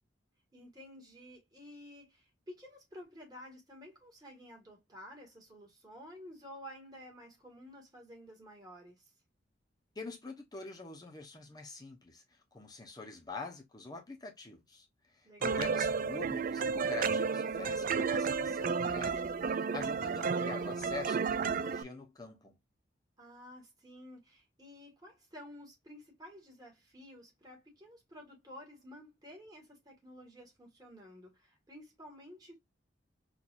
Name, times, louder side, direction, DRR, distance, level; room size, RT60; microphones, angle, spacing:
voice 1, 0.5-9.1 15.2-15.7 23.2-32.6, equal, 20° right, 1.9 m, -52 dB
voice 2, 10.0-12.2 12.5-14.8 15.1-22.5, left 3 dB, 20° left, 1.0 m, -45 dB
sound 1, 15.4-21.8, right 5 dB, 45° right, 0.3 m, -32 dB
4.5 x 2.7 x 2.5 m
head